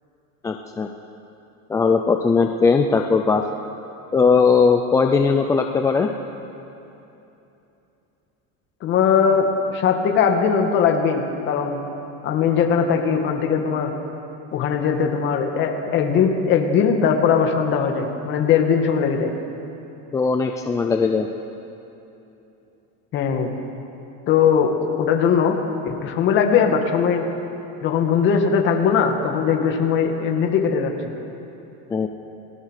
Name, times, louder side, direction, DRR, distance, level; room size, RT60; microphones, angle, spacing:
voice 1, 0.4-0.9 1.7-3.4 4.1-6.1 20.1-21.3 31.9-32.1, left 5 dB, 10° left, 4 dB, 0.4 m, -19 dB
voice 2, 8.8-11.8 12.2-13.9 14.5-19.3 23.1-23.5 24.3-25.6 25.8-27.3 27.8-31.1, left 6 dB, 35° left, 3 dB, 2.2 m, -20 dB
29.0 x 18.5 x 6.6 m, 2.9 s
cardioid pair, 170°, 33 cm